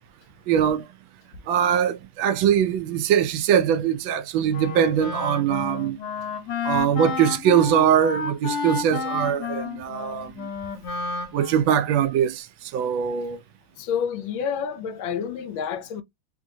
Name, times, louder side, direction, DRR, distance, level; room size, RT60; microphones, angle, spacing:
voice 1, 0.5-0.8 1.5-6.0 6.6-10.5 11.3-13.4, right 9 dB, 80° right, 1.3 m, -22 dB
Wind instrument woodwind instrument, 4.5-11.8, left 4 dB, 60° left, 1.4 m, -31 dB
voice 2, 13.8-16.0, left 7 dB, 75° left, 1.4 m, -29 dB
3.7 x 3.4 x 2.6 m
omnidirectional pair, 2.2 m